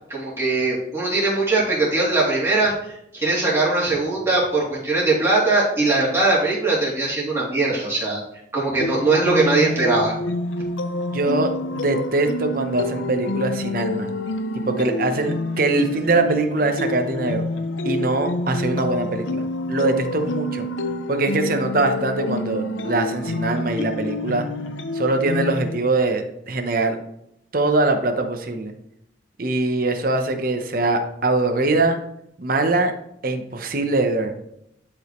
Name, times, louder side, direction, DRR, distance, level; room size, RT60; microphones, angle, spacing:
voice 1, 0.1-8.2 8.5-10.1, right 2 dB, 15° right, -8 dB, 2.8 m, -20 dB
sound 1, 8.8-25.8, left 2 dB, 75° left, 0.5 m, -28 dB
voice 2, 11.1-14.1 14.5-17.4 17.8-19.4 19.7-20.7 21.1-24.5 24.9-27.0 27.5-28.7 29.4-32.0 32.4-32.9 33.2-34.4, right 2 dB, 45° right, 6 dB, 0.9 m, -22 dB
11.0 x 5.1 x 3.1 m, 0.78 s
head